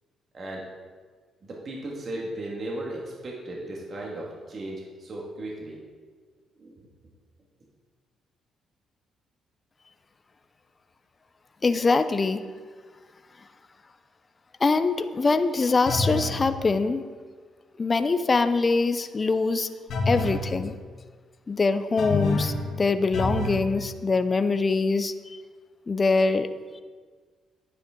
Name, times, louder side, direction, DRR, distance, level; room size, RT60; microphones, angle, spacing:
voice 1, 0.3-0.7 1.4-5.8 6.6-6.7, right 1 dB, 45° right, -3 dB, 2.0 m, -36 dB
voice 2, 11.6-12.4 14.6-17.0 17.8-19.7 20.1-20.8 21.5-25.1 25.9-26.5, left 3 dB, 30° left, 10 dB, 0.6 m, -23 dB
sound 1, 15.9-16.4 19.9-20.4 22.0-22.6 23.1-23.6, left 2 dB, 70° left, 2.1 m, -27 dB
10.0 x 9.6 x 3.8 m, 1.5 s
cardioid pair, 90°, 0 cm